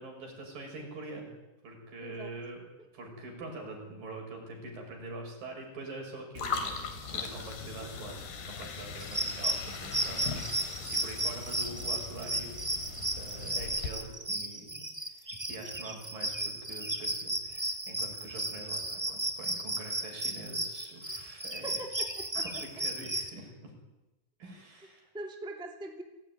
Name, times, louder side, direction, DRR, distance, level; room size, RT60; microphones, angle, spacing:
voice 1, 0.0-1.3 1.6-8.2 8.4-12.5 13.1-15.2 15.5-21.8 22.3-23.7 24.4-25.1, right 2 dB, 60° right, 2 dB, 8.0 m, -44 dB
voice 2, 2.0-2.3 21.6-22.4 25.1-26.0, right 2 dB, ahead, 3 dB, 2.4 m, -42 dB
sound 1, 6.4-13.9, left 5 dB, 80° left, 5.1 m, -39 dB
sound 2, 9.0-23.3, right 1 dB, 15° right, 0.8 m, -34 dB
29.5 x 18.0 x 9.9 m, 1.0 s
omnidirectional pair, 4.5 m